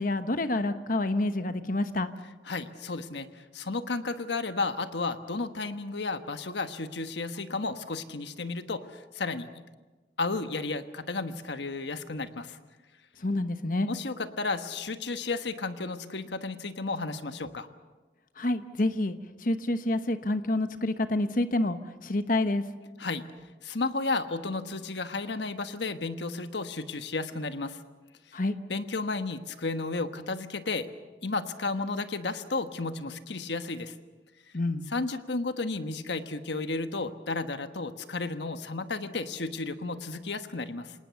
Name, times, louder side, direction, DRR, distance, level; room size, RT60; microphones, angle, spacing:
voice 1, 0.0-2.1 13.2-13.9 18.4-22.6 28.3-28.6 34.5-34.8, left 2 dB, 50° left, 10 dB, 1.1 m, -28 dB
voice 2, 2.5-9.5 10.2-12.6 13.4-13.5 13.8-17.7 23.0-23.2 23.6-27.8 28.7-30.9 31.2-33.9 34.9-40.9, left 3 dB, 75° left, 9 dB, 1.3 m, -33 dB
27.5 x 19.0 x 7.0 m, 1.3 s
head